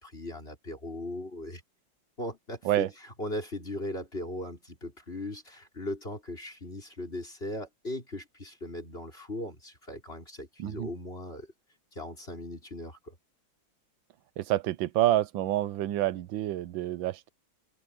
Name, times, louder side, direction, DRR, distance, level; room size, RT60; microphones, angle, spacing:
voice 1, 0.0-1.6 2.2-11.5 11.9-13.1, left 1 dB, 30° left, 5.1 m, -38 dB
voice 2, 14.4-17.3, right 14 dB, 80° right, 1.5 m, -28 dB
open air
omnidirectional pair, 2.1 m